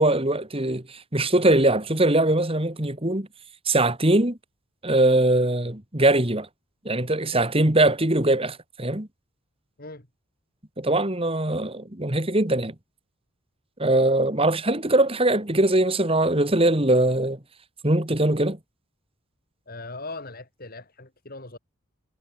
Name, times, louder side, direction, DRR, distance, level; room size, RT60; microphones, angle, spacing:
voice 1, 0.0-3.3 3.7-4.4 4.8-6.5 6.8-9.1 10.8-12.7 13.8-17.4 17.8-18.6, right 1 dB, 25° right, 2.5 m, -21 dB
voice 2, 19.7-21.6, left 2 dB, 45° left, 3.8 m, -39 dB
head